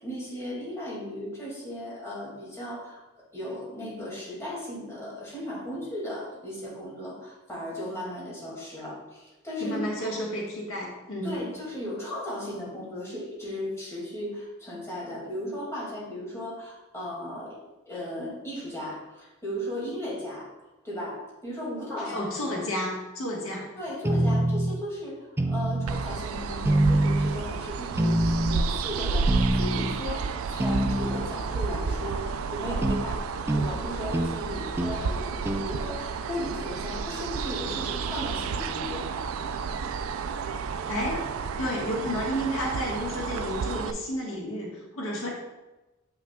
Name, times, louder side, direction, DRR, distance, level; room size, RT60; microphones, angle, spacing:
voice 1, 0.0-3.0 3.3-9.8 11.2-17.6 17.9-20.5 20.8-22.3 23.8-25.2 25.5-33.2 33.5-39.1, left 1 dB, 15° left, -6 dB, 2.0 m, -36 dB
voice 2, 9.6-11.4 22.0-23.7 40.9-41.2 41.6-45.3, equal, 80° left, -2 dB, 1.3 m, -31 dB
sound 1, 24.0-24.8 25.4-26.1 26.7-27.4 28.0-28.7 29.3-30.0 30.6-31.3 32.8-33.0 33.5-33.7 34.1-34.4 34.8-35.0 35.5-35.7, right 1 dB, 10° right, 0.3 m, -25 dB
sound 2, 25.9-43.9, right 5 dB, 90° right, 0.4 m, -31 dB
7.6 x 5.8 x 2.2 m, 1.1 s
head